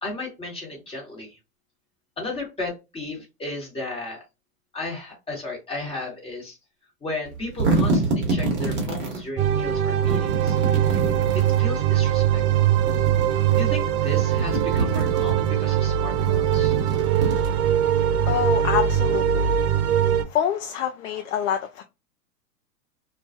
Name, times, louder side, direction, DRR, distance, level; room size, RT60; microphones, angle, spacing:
voice 1, 0.0-1.4 2.2-4.2 4.7-6.6 7.0-10.6 11.3-12.7 13.6-16.8, left 2 dB, 10° left, 1.2 m, -34 dB
sound 1, 7.3-9.2 10.0-11.6 12.6-13.6 14.0-15.5 16.1-17.9, right 3 dB, 25° right, 0.9 m, -27 dB
sound 2, 9.4-20.2, right 10 dB, 70° right, 0.6 m, -21 dB
voice 2, 18.3-19.5 20.2-21.8, left 10 dB, 60° left, 0.5 m, -26 dB
2.3 x 2.2 x 2.5 m
hypercardioid pair, 115°, 46 cm